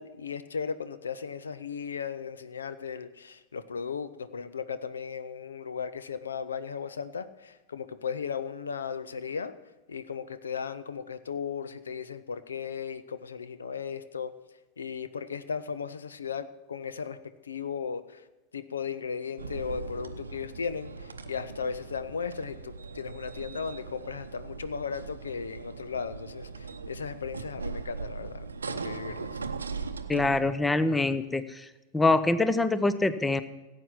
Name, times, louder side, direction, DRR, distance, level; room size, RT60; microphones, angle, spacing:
voice 1, 0.0-9.5 9.9-14.4 14.8-17.2 17.4-18.2 18.5-29.4, left 6 dB, 70° left, 14 dB, 0.6 m, -36 dB
sound 1, 19.4-30.6, right 4 dB, 75° right, 0.7 m, -39 dB
voice 2, 30.1-31.6 31.9-33.4, left 2 dB, 10° left, 14 dB, 0.6 m, -25 dB
16.5 x 8.2 x 5.8 m, 1.1 s
figure-of-eight pair, 90°, 0 cm